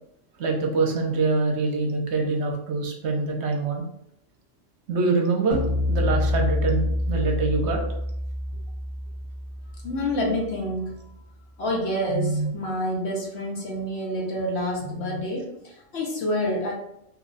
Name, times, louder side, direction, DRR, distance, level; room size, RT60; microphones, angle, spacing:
voice 1, 0.4-3.8 4.9-5.6 5.9-7.8, right 3 dB, 65° right, 1 dB, 0.9 m, -24 dB
sound 1, 5.5-10.8, left 1 dB, 25° right, 1.1 m, -27 dB
voice 2, 9.8-11.0 11.6-16.7, equal, 65° left, -1 dB, 1.0 m, -27 dB
2.9 x 2.2 x 3.8 m, 0.77 s
omnidirectional pair, 1.3 m